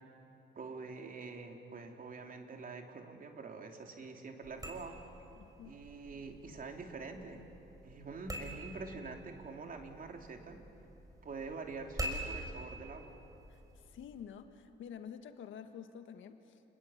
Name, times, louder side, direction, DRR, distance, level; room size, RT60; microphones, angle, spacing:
voice 1, 0.5-5.0 5.6-7.4 7.8-10.6 11.2-13.1, right 4 dB, 45° right, 3 dB, 3.1 m, -45 dB
sound 1, 4.4-14.2, right 1 dB, 15° right, 4.9 m, -46 dB
voice 2, 5.4-5.8 13.5-16.6, left 8 dB, 75° left, 8 dB, 1.7 m, -49 dB
29.5 x 20.5 x 8.8 m, 2.9 s
cardioid pair, 90°, 20 cm